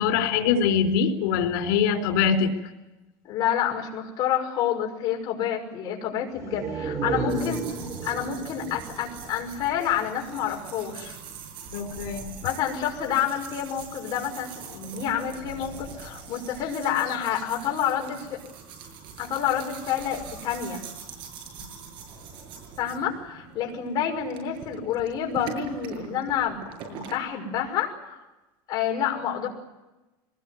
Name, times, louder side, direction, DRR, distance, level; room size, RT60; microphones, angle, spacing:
voice 1, 0.0-2.5 11.7-12.4, left 7 dB, 85° left, 6 dB, 4.0 m, -23 dB
voice 2, 3.2-7.6 8.0-11.2 12.4-18.4 19.2-20.8 22.8-26.6 26.9-28.2 28.7-29.5, left 9 dB, 40° left, 1 dB, 5.9 m, -28 dB
sound 1, 6.3-10.1 10.4-10.5, right 3 dB, 30° right, 3.9 m, -33 dB
sound 2, 7.3-27.2, right 6 dB, 50° right, 7.1 m, -43 dB
24.5 x 20.5 x 9.5 m, 1.0 s
cardioid pair, 155°, 10 cm